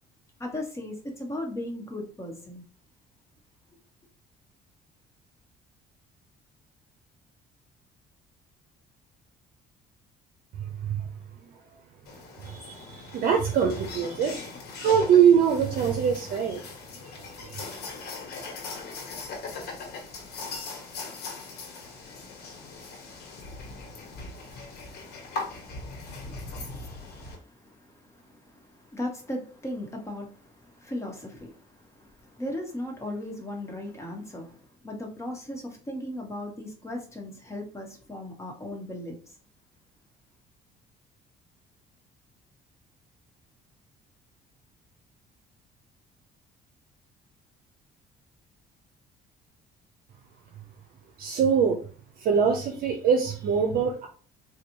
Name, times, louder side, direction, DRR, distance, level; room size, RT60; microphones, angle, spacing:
voice 1, 0.4-2.6 26.1-39.3, left 1 dB, 15° left, 1.1 m, -37 dB
sound 1, 12.0-27.3, left 3 dB, 70° left, 1.2 m, -40 dB
voice 2, 12.4-14.4 14.8-16.6 51.2-51.8 52.2-54.1, right 7 dB, 60° right, 0.7 m, -23 dB
4.1 x 2.3 x 3.0 m
cardioid pair, 110°, 17 cm